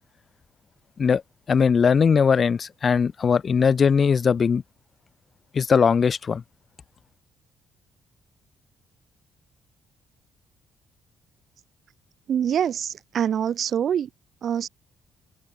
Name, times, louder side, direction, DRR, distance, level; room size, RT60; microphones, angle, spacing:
voice 1, 1.5-4.6 5.5-6.4, left 6 dB, 45° left, 1.2 m, -20 dB
voice 2, 12.3-14.1 14.4-14.7, right 9 dB, 60° right, 1.3 m, -25 dB
cardioid pair, 90°, 0 cm